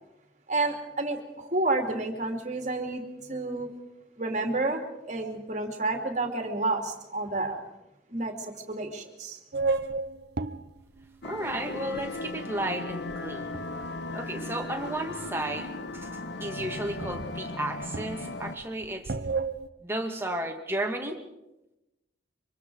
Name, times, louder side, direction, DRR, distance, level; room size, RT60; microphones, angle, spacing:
voice 1, 0.5-3.7 4.2-7.6 8.1-9.4, right 2 dB, 40° right, 4 dB, 2.7 m, -30 dB
sound 1, 9.5-12.4 12.9-14.2 14.8-15.4 15.7-15.8 16.0-16.1 16.5-16.6 16.9-19.7, right 3 dB, 60° right, 0.8 m, -33 dB
sound 2, 11.2-18.6, left 2 dB, 75° left, 1.1 m, -37 dB
voice 2, 11.2-13.5 14.1-16.1 16.4-19.1 19.8-21.2, right 1 dB, 15° right, 2 dB, 2.2 m, -33 dB
25.0 x 24.5 x 4.8 m, 0.92 s
head